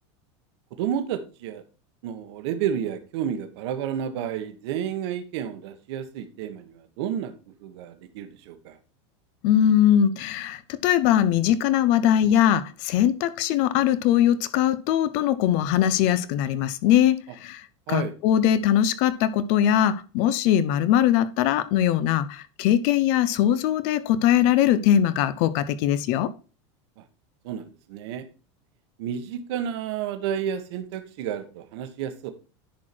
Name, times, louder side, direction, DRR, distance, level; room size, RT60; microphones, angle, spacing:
voice 1, 0.8-1.6 2.0-7.3 7.6-8.8 17.9-18.1 27.4-28.2 29.0-32.3, right 9 dB, 65° right, 1.4 m, -31 dB
voice 2, 9.4-17.6 17.9-26.3, left 10 dB, 50° left, 0.7 m, -21 dB
10.5 x 4.6 x 4.4 m
supercardioid pair, 160°, 15 cm